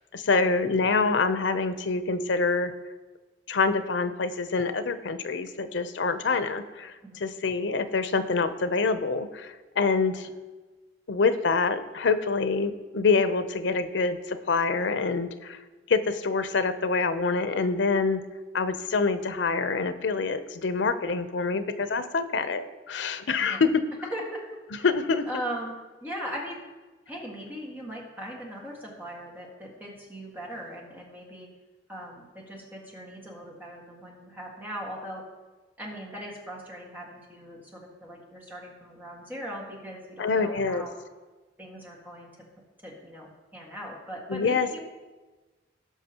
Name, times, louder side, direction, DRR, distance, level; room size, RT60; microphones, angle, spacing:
voice 1, 0.0-2.7 3.5-6.9 7.2-10.3 11.1-15.6 15.9-18.2 18.5-23.8 24.8-25.3 40.2-40.9 44.3-44.8, left 4 dB, 90° left, 11 dB, 0.6 m, -26 dB
voice 2, 25.3-26.6 27.1-31.5 31.9-35.2 35.8-41.0 41.6-42.3 42.8-44.8, equal, 10° right, -4 dB, 1.7 m, -39 dB
17.5 x 6.0 x 2.9 m, 1.2 s
head